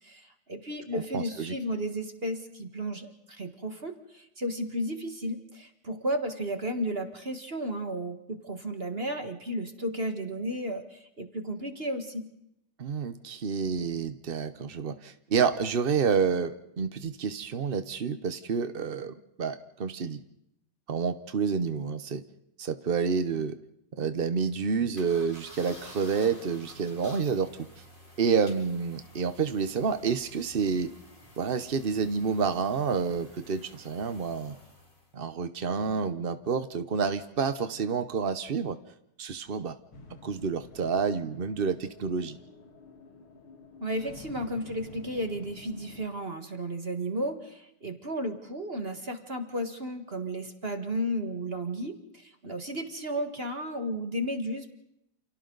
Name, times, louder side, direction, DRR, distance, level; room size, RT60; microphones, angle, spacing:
voice 1, 0.0-12.2 43.8-54.7, equal, 30° right, 6 dB, 1.7 m, -33 dB
voice 2, 0.9-1.5 12.8-20.2 20.9-22.2 22.6-23.6 23.9-27.5 28.2-30.9 31.4-34.6 35.1-38.8 39.2-39.8 40.2-42.4, right 5 dB, 60° right, 11 dB, 0.5 m, -29 dB
sound 1, 25.0-35.1, left 1 dB, 20° left, 4.7 m, -51 dB
sound 2, 39.9-46.1, left 3 dB, 85° left, 2.9 m, -50 dB
29.0 x 29.0 x 4.0 m, 0.80 s
omnidirectional pair, 2.3 m